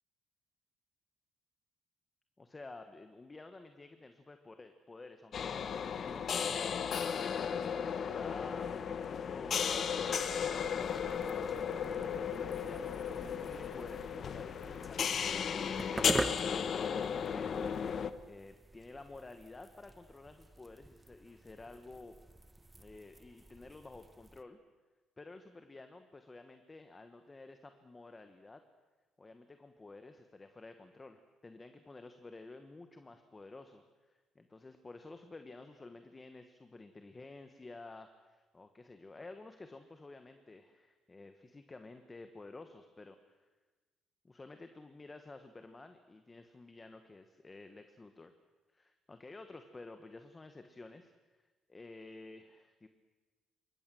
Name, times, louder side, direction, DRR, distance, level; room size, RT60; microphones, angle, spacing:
voice 1, 2.4-9.6 10.0-17.7 18.2-22.1 22.8-24.6 25.2-28.6 29.2-43.5 44.2-48.3 48.7-51.4 51.7-52.9, left 3 dB, 15° left, 7 dB, 1.3 m, -52 dB
sound 1, 5.3-18.1, left 7 dB, 35° left, 1.1 m, -35 dB
sound 2, 10.2-24.4, right 2 dB, 10° right, 0.9 m, -46 dB
27.5 x 23.5 x 7.7 m, 1.3 s
cardioid pair, 180°, 0 cm